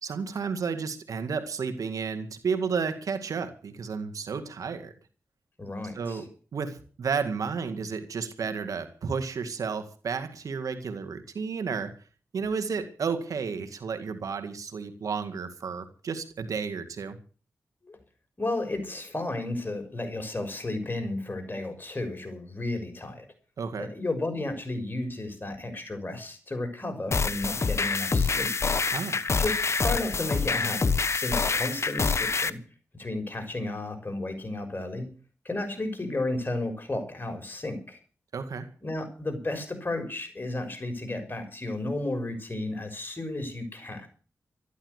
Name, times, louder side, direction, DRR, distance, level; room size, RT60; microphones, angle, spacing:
voice 1, 0.0-4.9 5.9-6.3 6.5-12.0 12.3-17.2 23.6-23.9 28.9-29.2 38.3-38.7, right 5 dB, 85° right, 8 dB, 2.0 m, -32 dB
voice 2, 5.6-6.3 17.8-18.0 18.4-23.3 23.8-28.5 29.4-32.6 32.9-35.1 35.4-38.0 38.8-44.1, left 2 dB, 35° left, 6 dB, 6.3 m, -33 dB
sound 1, 27.1-32.5, left 4 dB, 55° left, 1.1 m, -26 dB
13.5 x 11.5 x 8.1 m, 0.39 s
cardioid pair, 45°, 6 cm